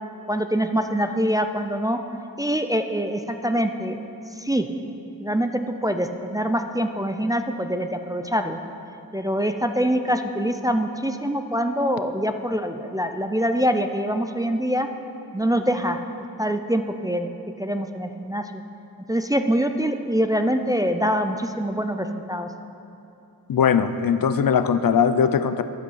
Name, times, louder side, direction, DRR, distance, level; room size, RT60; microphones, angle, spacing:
voice 1, 0.3-2.0 2.4-4.0 4.4-4.7 5.2-8.6 9.1-14.9 15.3-16.0 16.4-17.3 17.6-18.5 19.1-22.5, equal, 10° right, 7 dB, 0.4 m, -24 dB
voice 2, 23.5-25.6, left 7 dB, 65° left, 11 dB, 0.5 m, -20 dB
12.0 x 7.7 x 5.6 m, 2.8 s
wide cardioid pair, 125°, 38 cm